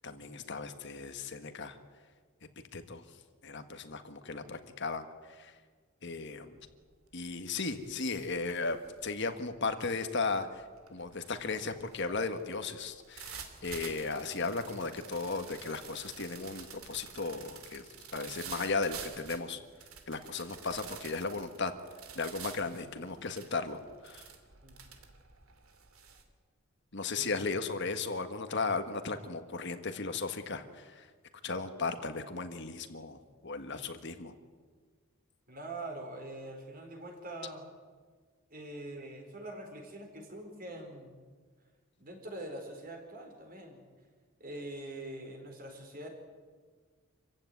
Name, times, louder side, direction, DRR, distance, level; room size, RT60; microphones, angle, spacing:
voice 1, 0.0-1.8 2.7-3.0 3.4-5.0 5.4-5.5 6.0-6.6 7.1-8.8 9.0-10.6 10.9-17.8 18.1-19.6 20.1-21.7 22.1-24.3 26.9-31.1 31.4-34.3, left 4 dB, 55° left, 8 dB, 1.6 m, -36 dB
sound 1, 6.6-6.9 7.3-26.2, right 7 dB, 80° right, 2.8 m, -49 dB
voice 2, 35.5-37.6 38.5-41.1 42.0-43.8 44.4-46.1, right 1 dB, 40° right, 3 dB, 4.8 m, -44 dB
26.5 x 15.5 x 9.5 m, 1.5 s
head